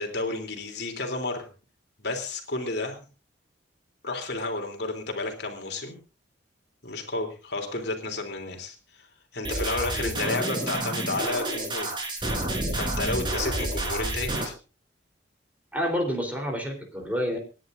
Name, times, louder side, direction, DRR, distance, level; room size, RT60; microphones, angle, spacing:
voice 1, 0.0-1.5 2.0-3.0 4.0-6.0 6.8-9.1 9.3-11.9 12.2-12.3 12.7-14.5, left 2 dB, 55° left, 3 dB, 3.3 m, -31 dB
sound 1, 9.4-14.4, right 1 dB, 25° right, 4.1 m, -29 dB
voice 2, 15.7-17.4, equal, 10° right, 1 dB, 3.7 m, -29 dB
27.5 x 10.5 x 2.6 m, 0.33 s
head